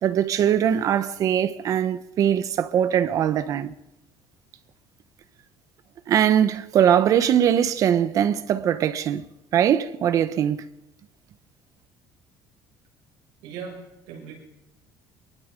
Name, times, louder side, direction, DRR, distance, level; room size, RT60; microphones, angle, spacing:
voice 1, 0.0-3.7 6.1-9.3 9.5-10.6, right 9 dB, 40° right, 1.1 m, -21 dB
voice 2, 13.4-14.3, right 6 dB, 85° right, 7.2 m, -38 dB
24.0 x 23.0 x 5.4 m
cardioid pair, 170°, 9 cm